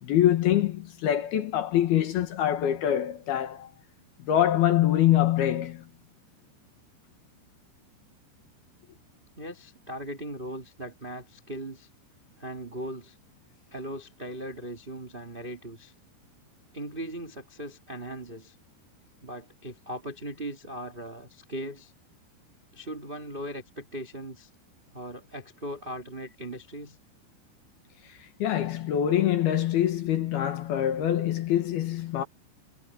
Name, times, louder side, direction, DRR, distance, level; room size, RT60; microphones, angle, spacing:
voice 1, 0.0-3.7 4.2-5.9 28.4-32.2, left 11 dB, 65° left, 2.9 m, -24 dB
voice 2, 9.3-11.9 12.4-13.2 13.7-15.9 16.7-18.5 19.2-21.9 22.7-24.5 24.9-27.0, right 1 dB, 70° right, 0.5 m, -39 dB
omnidirectional pair, 5.7 m